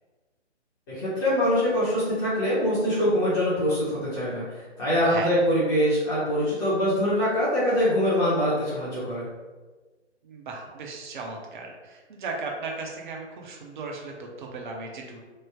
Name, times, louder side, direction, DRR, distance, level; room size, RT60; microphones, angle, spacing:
voice 1, 0.9-9.3, equal, 20° left, -10 dB, 0.7 m, -24 dB
voice 2, 5.0-5.4 10.2-15.2, right 3 dB, 45° right, 0 dB, 0.6 m, -36 dB
3.1 x 2.1 x 3.4 m, 1.3 s
figure-of-eight pair, 135°, 35 cm